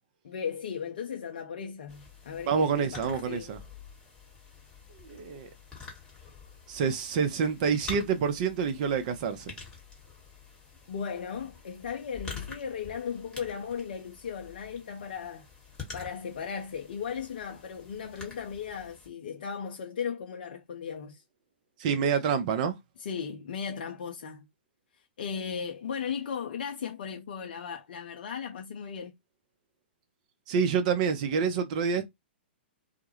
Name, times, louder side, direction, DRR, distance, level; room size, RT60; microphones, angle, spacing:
voice 1, 0.2-3.5 10.9-15.5 15.9-21.2 23.0-24.5 25.2-29.1, left 7 dB, 55° left, 0.4 m, -36 dB
sound 1, 1.9-19.1, left 5 dB, 10° left, 1.1 m, -47 dB
voice 2, 2.5-3.6 5.0-5.5 6.7-9.5 21.8-22.8 30.5-32.1, right 6 dB, 45° right, 0.5 m, -27 dB
2.2 x 2.1 x 2.9 m
figure-of-eight pair, 110°, 6 cm